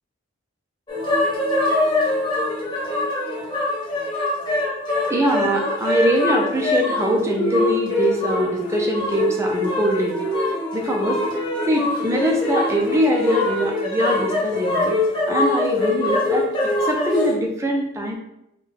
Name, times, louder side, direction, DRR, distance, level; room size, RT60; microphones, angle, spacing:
sound 1, 0.9-17.3, left 2 dB, 25° left, 0.9 m, -23 dB
voice 1, 5.1-10.2 10.7-11.2 11.7-15.0 15.3-16.5 16.8-18.1, equal, 15° right, 0 dB, 0.5 m, -22 dB
3.5 x 2.3 x 3.5 m, 0.81 s
head